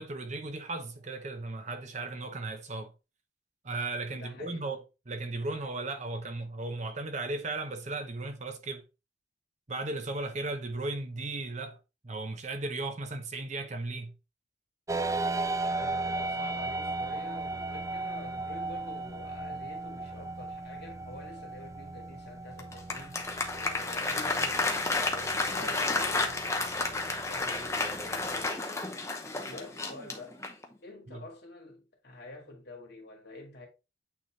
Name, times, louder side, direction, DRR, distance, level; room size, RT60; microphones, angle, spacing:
voice 1, 0.0-2.9 3.6-8.8 9.7-11.8 12.0-14.1 31.1-31.2, right 2 dB, 35° right, 0.8 m, -36 dB
voice 2, 4.1-4.7 15.7-23.2 23.6-28.8 29.4-30.4 30.8-33.7, left 2 dB, 55° left, 2.2 m, -48 dB
sound 1, 14.9-28.5, right 3 dB, 15° right, 0.3 m, -36 dB
Applause, 22.6-30.7, left 3 dB, 15° left, 0.9 m, -31 dB
8.8 x 3.7 x 3.1 m
head